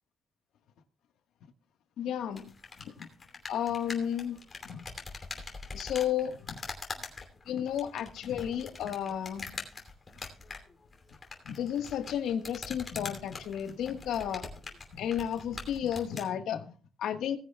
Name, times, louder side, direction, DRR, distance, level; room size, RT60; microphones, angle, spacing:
voice 1, 2.0-2.5 3.0-3.1 3.5-4.4 4.6-4.8 5.7-6.6 7.5-9.6 11.4-14.5 14.9-17.4, left 9 dB, 80° left, 1.3 m, -33 dB
sound 1, 2.3-16.3, left 4 dB, 25° left, 2.8 m, -44 dB
19.0 x 9.9 x 2.2 m
cardioid pair, 150°, 0 cm